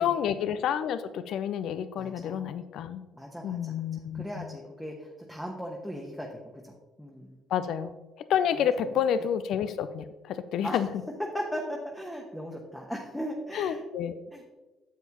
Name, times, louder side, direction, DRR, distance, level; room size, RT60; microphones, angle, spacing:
voice 1, 0.0-3.0 3.4-4.5 7.5-7.9 8.3-10.9 13.5-14.2, left 9 dB, 60° left, 13 dB, 0.4 m, -29 dB
voice 2, 2.0-2.5 3.1-3.9 4.1-7.4 10.6-10.8 11.3-13.8 14.3-14.4, equal, 5° left, -1 dB, 1.2 m, -38 dB
9.2 x 7.2 x 3.0 m, 1.2 s
hypercardioid pair, 50°, 0 cm